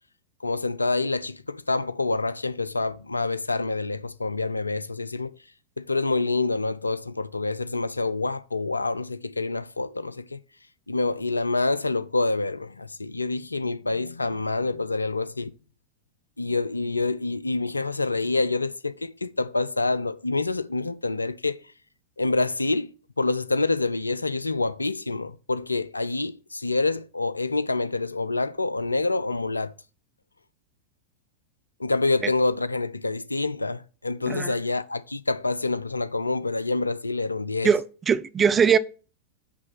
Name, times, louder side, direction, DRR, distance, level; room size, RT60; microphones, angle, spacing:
voice 1, 0.4-5.3 5.8-10.4 10.9-15.5 16.4-21.6 22.2-22.9 23.2-29.7 31.8-37.7, left 3 dB, 80° left, 0.3 m, -27 dB
voice 2, 34.3-34.6 37.6-38.8, right 7 dB, 20° right, 0.4 m, -21 dB
8.0 x 3.2 x 5.5 m
figure-of-eight pair, 90°, 0 cm